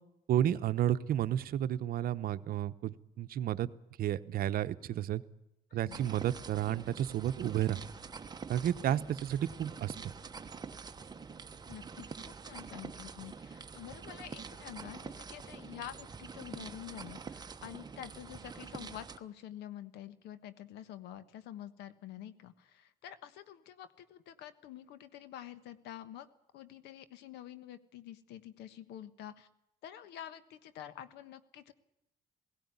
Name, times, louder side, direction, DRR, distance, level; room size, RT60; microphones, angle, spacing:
voice 1, 0.3-3.7 4.0-5.2 5.7-7.8 8.5-9.9, right 11 dB, 60° right, 13 dB, 0.9 m, -32 dB
sound 1, 5.9-19.2, right 5 dB, 25° right, 1.1 m, -46 dB
voice 2, 11.7-26.3 26.5-29.5 29.8-31.7, left 11 dB, 85° left, 14 dB, 1.3 m, -48 dB
17.0 x 17.0 x 9.7 m, 0.84 s
cardioid pair, 110°, 17 cm